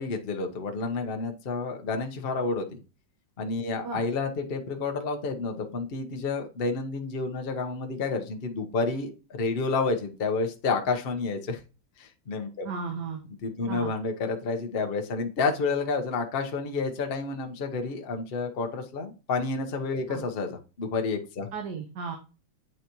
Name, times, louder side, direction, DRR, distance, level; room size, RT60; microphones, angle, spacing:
voice 1, 0.0-2.8 3.4-11.6 12.0-12.7 13.4-21.5, left 4 dB, 40° left, 5 dB, 0.9 m, -30 dB
voice 2, 12.6-13.2 13.7-13.9 20.1-20.2 21.5-22.2, right 5 dB, 60° right, 3 dB, 1.5 m, -34 dB
9.2 x 4.1 x 3.0 m, 0.32 s
omnidirectional pair, 2.2 m